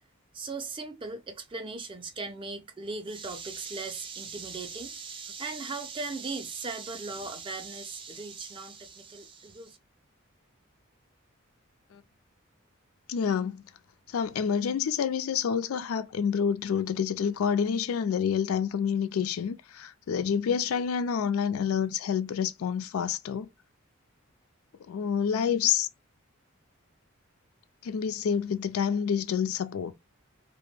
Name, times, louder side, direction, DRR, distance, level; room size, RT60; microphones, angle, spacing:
voice 1, 0.3-9.8, right 4 dB, 25° right, 0.4 m, -38 dB
voice 2, 13.1-13.6 14.1-23.5 24.9-25.9 27.8-29.9, left 7 dB, 85° left, 0.4 m, -28 dB
2.1 x 2.0 x 3.1 m
head